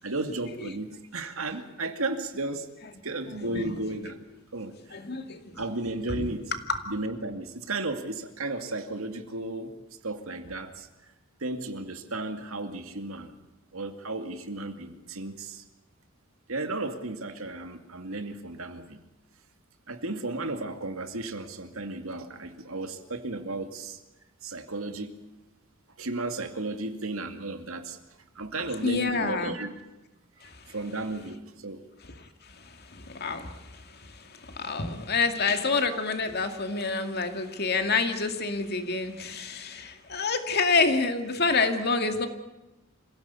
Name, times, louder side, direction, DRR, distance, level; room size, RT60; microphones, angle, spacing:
voice 1, 0.0-2.7 3.0-4.2 4.5-4.7 5.5-6.5 6.9-9.7 10.0-10.9 11.4-13.3 13.7-15.6 16.5-19.0 19.9-24.0 24.4-25.2 26.0-28.0 28.4-29.7 30.7-31.8, right 2 dB, 80° right, 7 dB, 2.4 m, -34 dB
voice 2, 3.4-3.8 4.9-5.6 6.2-6.3 6.7-6.8 28.8-29.6 30.4-30.6 32.0-42.3, left 4 dB, 50° left, 7 dB, 2.3 m, -28 dB
27.0 x 16.5 x 8.4 m, 1.0 s
head